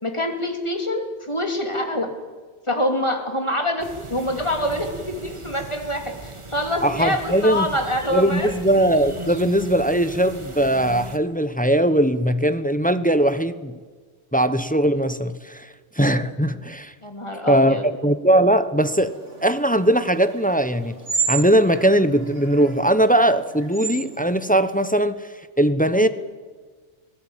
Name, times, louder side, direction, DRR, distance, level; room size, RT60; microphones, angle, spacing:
voice 1, 0.0-2.1 2.7-8.5 17.0-17.8 25.9-26.1, left 1 dB, 25° left, 3.1 m, -25 dB
sound 1, 3.8-11.2, right 2 dB, 25° right, 1.6 m, -38 dB
voice 2, 6.8-7.7 8.1-13.8 14.3-15.7 16.0-16.9 17.5-19.2 19.4-20.9 21.3-25.3 25.6-26.1, right 1 dB, 10° left, 0.9 m, -20 dB
sound 2, 18.9-24.9, right 5 dB, 85° right, 3.2 m, -32 dB
24.5 x 18.5 x 9.0 m
omnidirectional pair, 1.2 m